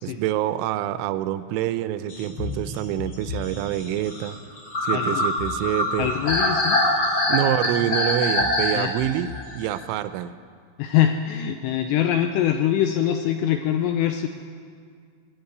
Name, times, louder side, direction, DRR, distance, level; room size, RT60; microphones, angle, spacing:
voice 1, 0.0-4.4 4.8-6.1 7.3-10.3, right 12 dB, 85° right, 13 dB, 3.0 m, -26 dB
sound 1, 2.1-9.8, left 1 dB, 60° left, 1.0 m, -25 dB
voice 2, 4.9-5.2 6.0-6.8 8.8-8.9 10.8-14.3, left 10 dB, 85° left, 6 dB, 2.5 m, -23 dB
20.5 x 7.3 x 9.4 m, 2.1 s
omnidirectional pair, 5.5 m